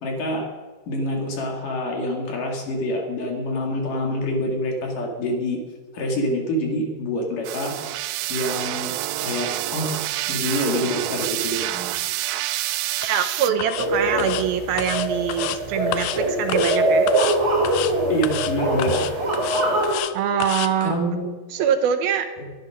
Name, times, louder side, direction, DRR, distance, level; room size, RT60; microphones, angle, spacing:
voice 1, 0.0-0.5 0.9-5.6 5.9-7.7 8.3-8.9 9.2-12.0 18.1-18.9 20.8-21.3 22.4-22.5, equal, 55° left, 2 dB, 3.9 m, -26 dB
sound 1, 7.4-13.5, right 15 dB, 85° right, 2.0 m, -28 dB
sound 2, 13.0-13.3 13.6-13.9 14.2-14.4 14.8-15.6 15.9-16.2 16.5-16.8 17.1-17.4 17.6-17.9 18.2-18.5 18.8-20.1 20.4-20.7, left 13 dB, 85° left, 2.8 m, -30 dB
voice 2, 13.0-17.1 20.1-21.0 21.5-22.3, right 8 dB, 70° right, 8 dB, 2.6 m, -24 dB
sound 3, 13.8-19.9, right 1 dB, 15° right, 4.5 m, -23 dB
21.5 x 13.0 x 5.2 m, 1.4 s
omnidirectional pair, 4.9 m